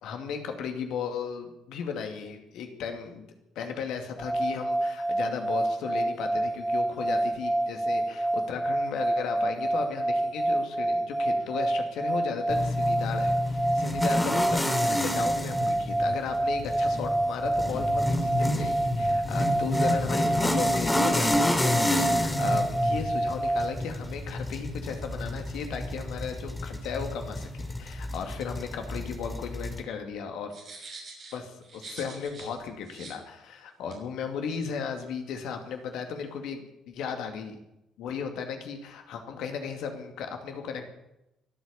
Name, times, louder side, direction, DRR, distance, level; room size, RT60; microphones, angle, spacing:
voice 1, 0.0-3.3 3.6-30.5 31.3-37.6 38.0-40.9, left 6 dB, 65° left, 5 dB, 2.5 m, -36 dB
sound 1, 4.2-23.8, right 1 dB, 15° right, 1.0 m, -28 dB
sound 2, 12.5-29.8, left 1 dB, 10° left, 2.8 m, -30 dB
sound 3, 30.5-32.5 32.8-33.2 33.9-34.0, right 3 dB, 50° right, 6.5 m, -45 dB
23.5 x 8.4 x 7.1 m, 0.89 s
hypercardioid pair, 50°, 0 cm